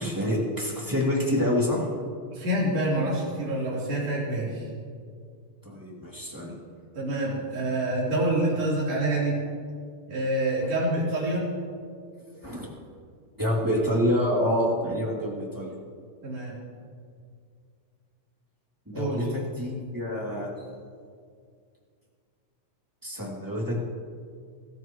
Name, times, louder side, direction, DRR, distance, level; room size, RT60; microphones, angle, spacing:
voice 1, 0.0-1.9 5.6-6.6 12.4-12.7 13.4-15.7 18.9-20.5 23.0-23.8, left 1 dB, 5° right, -4 dB, 2.5 m, -27 dB
voice 2, 2.3-4.7 6.9-9.4 10.1-11.5 16.2-16.6 18.9-19.3 20.3-20.4, right 1 dB, 60° right, -7 dB, 4.9 m, -27 dB
24.5 x 14.0 x 3.1 m, 2.2 s
omnidirectional pair, 3.3 m